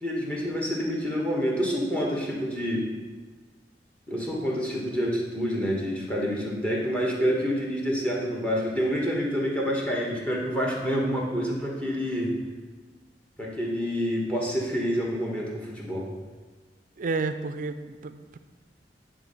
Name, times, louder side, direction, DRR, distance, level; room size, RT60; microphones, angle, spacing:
voice 1, 0.0-2.9 4.1-12.3 13.4-16.1, equal, 10° left, -2 dB, 1.3 m, -27 dB
voice 2, 17.0-18.4, right 3 dB, 50° right, 10 dB, 0.4 m, -31 dB
9.7 x 3.7 x 5.4 m, 1.3 s
head